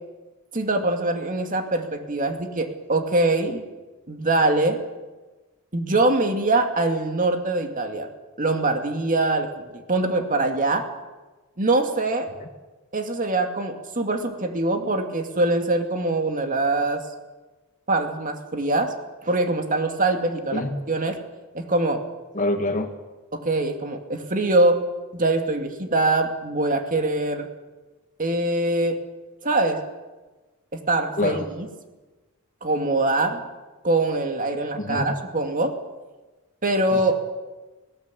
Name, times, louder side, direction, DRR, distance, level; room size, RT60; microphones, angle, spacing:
voice 1, 0.5-3.6 4.1-4.8 5.7-8.1 8.4-10.9 11.6-12.3 12.9-17.0 17.9-18.9 19.2-20.6 20.9-21.2 21.5-22.0 23.4-24.8 25.1-27.5 28.2-29.0 29.4-29.8 30.9-31.7 32.6-33.4 33.8-35.7 36.6-37.1, right 2 dB, 40° right, 5 dB, 2.5 m, -23 dB
voice 2, 22.3-22.9 31.2-31.5 34.7-35.1 36.9-37.1, left 1 dB, 40° left, 6 dB, 1.9 m, -26 dB
20.0 x 18.0 x 8.5 m, 1.2 s
head